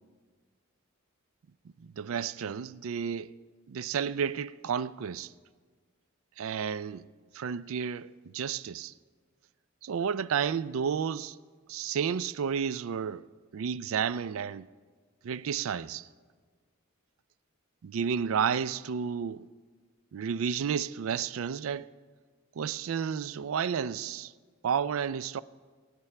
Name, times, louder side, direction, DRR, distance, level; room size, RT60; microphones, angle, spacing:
voice 1, 1.8-3.3 3.7-5.3 6.4-7.0 7.3-8.9 9.8-11.4 11.7-13.2 13.5-14.7 15.2-16.1 17.8-19.5 20.1-21.9 22.6-24.3 24.6-25.4, right 7 dB, 70° right, 0.4 m, -31 dB
22.0 x 9.5 x 3.3 m
head